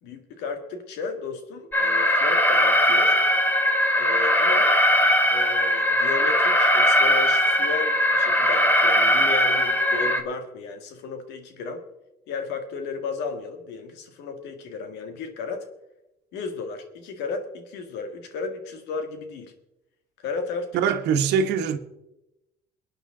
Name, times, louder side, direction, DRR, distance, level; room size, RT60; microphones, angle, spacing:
voice 1, 0.0-3.2 4.0-4.8 5.3-11.8 12.3-15.7 16.3-19.5 20.2-20.8, left 4 dB, 90° left, 2.0 m, -34 dB
Alarm, 1.7-10.2, equal, 10° left, 1.6 m, -20 dB
voice 2, 20.7-21.8, right 7 dB, 85° right, 1.3 m, -22 dB
22.5 x 9.0 x 3.8 m
cardioid pair, 110°, 17 cm